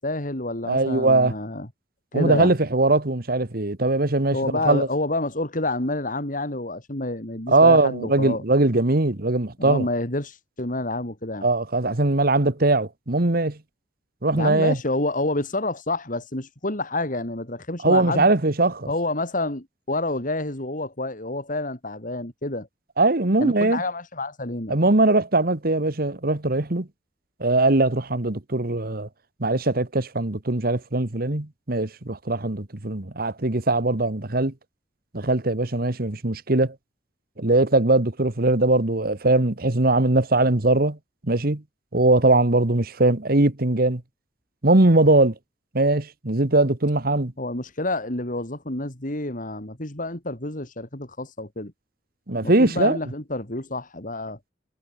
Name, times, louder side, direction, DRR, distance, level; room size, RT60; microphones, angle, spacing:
voice 1, 0.0-1.7 2.1-2.5 4.3-8.4 9.6-11.5 14.3-18.3 18.9-22.7 23.4-24.8 47.4-51.7 52.4-54.4, left 2 dB, 50° left, 3.9 m, -28 dB
voice 2, 0.7-1.3 2.1-4.4 4.7-4.9 7.5-9.9 11.4-13.6 14.2-14.8 17.8-18.9 23.0-23.8 24.7-26.9 27.4-29.1 29.4-34.5 35.1-36.7 37.4-41.0 41.3-41.6 41.9-44.0 44.6-45.3 45.7-47.3 52.3-53.0, right 2 dB, 55° right, 1.6 m, -20 dB
head